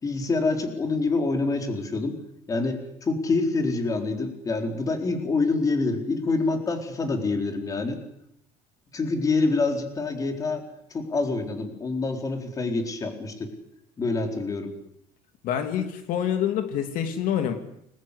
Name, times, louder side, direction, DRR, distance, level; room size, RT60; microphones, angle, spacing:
voice 1, 0.0-2.2 2.5-8.0 8.9-10.6 10.9-13.5 14.0-14.7, left 3 dB, 20° left, 5 dB, 4.2 m, -26 dB
voice 2, 15.4-17.5, left 9 dB, 60° left, 7 dB, 2.8 m, -26 dB
30.0 x 22.0 x 8.4 m, 0.75 s
cardioid pair, 175°, 16 cm